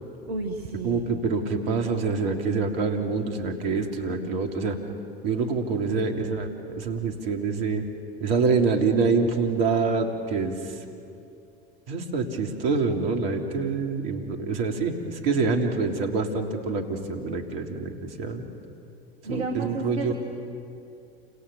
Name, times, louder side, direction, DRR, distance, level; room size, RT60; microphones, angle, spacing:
voice 1, 0.2-1.1 19.2-20.1, right 3 dB, 80° right, 4 dB, 1.7 m, -32 dB
voice 2, 0.8-4.8 5.2-6.5 6.8-7.8 8.2-10.8 11.9-18.4 19.3-20.1, right 4 dB, 65° right, 3 dB, 3.4 m, -26 dB
29.5 x 27.0 x 7.1 m, 2.6 s
hypercardioid pair, 80°, 31 cm